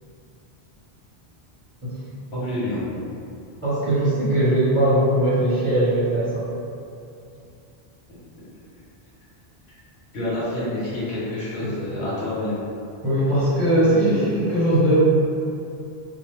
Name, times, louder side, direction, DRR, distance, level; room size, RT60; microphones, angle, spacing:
voice 1, 2.3-2.8 10.1-12.6, left 1 dB, 85° left, -11 dB, 1.3 m, -27 dB
voice 2, 3.6-6.5 11.6-11.7 13.0-15.0, right 1 dB, 35° right, -11 dB, 0.7 m, -20 dB
2.9 x 2.1 x 3.1 m, 2.6 s
omnidirectional pair, 1.1 m